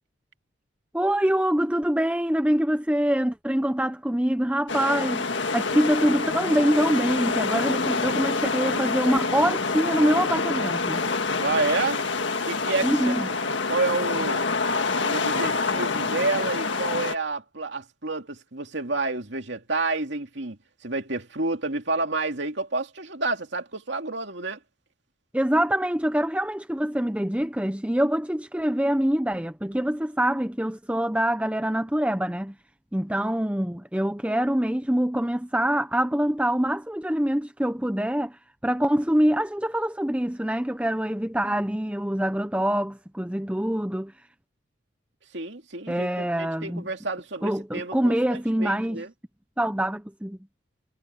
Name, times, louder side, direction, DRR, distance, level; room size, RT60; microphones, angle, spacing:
voice 1, 0.9-5.3 5.5-11.0 12.8-13.3 25.3-32.6 32.9-44.1 45.9-46.9 47.4-49.0 49.6-50.4, equal, 5° right, 0.7 m, -25 dB
sound 1, 4.7-17.2, left 4 dB, 65° left, 1.8 m, -26 dB
voice 2, 11.4-12.0 12.5-13.1 13.7-14.4 15.0-24.6 45.3-49.1, right 3 dB, 60° right, 2.6 m, -29 dB
head